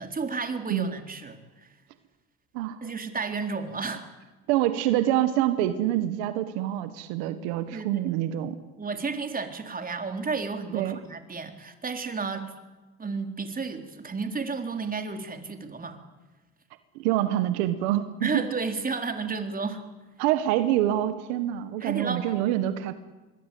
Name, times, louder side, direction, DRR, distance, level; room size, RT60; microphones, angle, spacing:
voice 1, 0.0-1.7 2.8-4.1 7.7-8.1 8.8-12.5 13.0-16.0 18.2-19.8 21.8-22.4, right 4 dB, 25° right, 6 dB, 4.0 m, -32 dB
voice 2, 4.5-8.6 10.7-11.0 17.0-18.4 20.2-22.9, right 13 dB, 90° right, 11 dB, 1.6 m, -26 dB
26.0 x 21.5 x 8.6 m, 1.2 s
supercardioid pair, 80°, 32 cm